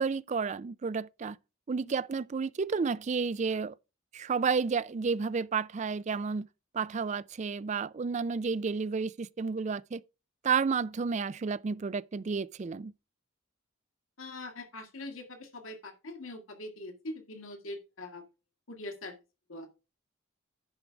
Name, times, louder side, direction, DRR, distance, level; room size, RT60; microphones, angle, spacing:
voice 1, 0.0-1.4 1.7-3.7 4.1-6.5 6.7-10.0 10.4-12.9, right 5 dB, 35° right, 0.3 m, -31 dB
voice 2, 14.2-18.2 18.7-19.2 19.5-19.7, left 2 dB, 85° left, 2.0 m, -42 dB
10.5 x 4.6 x 5.1 m
head